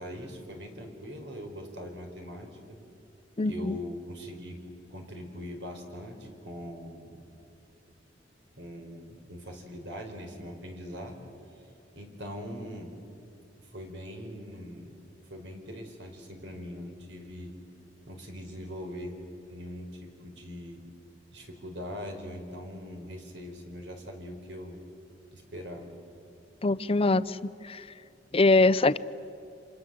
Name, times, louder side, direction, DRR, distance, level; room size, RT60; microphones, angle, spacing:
voice 1, 0.0-2.8 3.4-4.5 4.9-7.2 8.6-11.2 11.9-12.9 13.5-14.9 15.3-17.5 18.1-19.2 19.5-20.8 21.3-24.8 25.3-25.9, equal, 75° right, 3 dB, 4.7 m, -41 dB
voice 2, 3.4-3.8 26.6-27.4 27.6-27.8 28.3-29.0, left 2 dB, 30° left, 16 dB, 0.6 m, -23 dB
28.5 x 26.5 x 7.7 m, 2.6 s
head